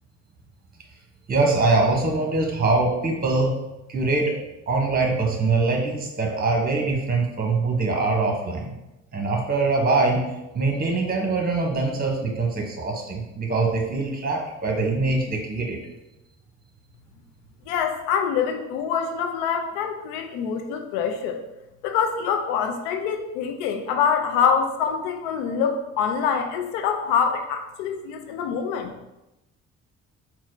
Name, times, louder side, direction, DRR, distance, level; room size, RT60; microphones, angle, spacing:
voice 1, 1.3-3.5 3.9-4.4 4.7-8.7 9.1-10.2 10.5-15.8, right 3 dB, 25° right, 1 dB, 1.2 m, -23 dB
voice 2, 17.7-21.4 21.8-28.9, left 7 dB, 80° left, 5 dB, 0.6 m, -25 dB
4.2 x 2.3 x 3.9 m, 0.94 s
hypercardioid pair, 45°, 35 cm